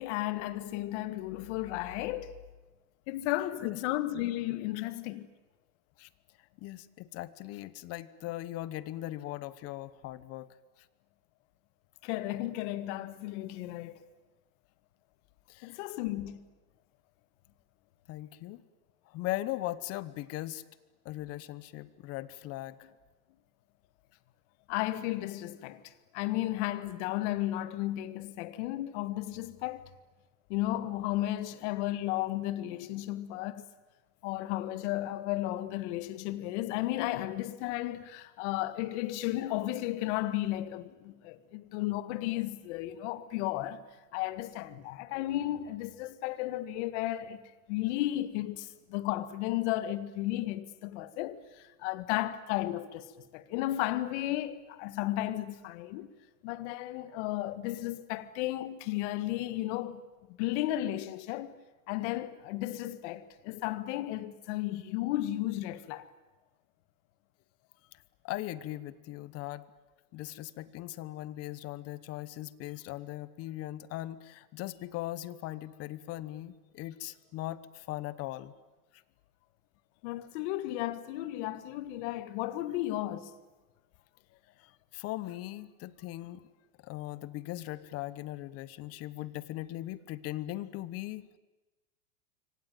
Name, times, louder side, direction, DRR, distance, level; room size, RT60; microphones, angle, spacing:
voice 1, 0.0-2.3 3.1-5.3 12.0-13.9 15.6-16.4 24.7-29.9 30.5-33.6 34.2-43.8 44.1-47.4 47.7-51.4 51.8-56.1 56.4-60.0 60.4-61.5 61.9-66.1 80.0-83.3, left 15 dB, 50° left, 1.7 m, -34 dB
voice 2, 6.4-10.9 15.5-15.8 18.1-18.6 19.0-20.6 21.0-22.9 67.9-69.7 70.1-78.5 78.9-79.0 84.6-86.5 86.8-91.4, left 16 dB, 30° left, 1.0 m, -39 dB
26.5 x 24.0 x 9.3 m
supercardioid pair, 145°, 45 cm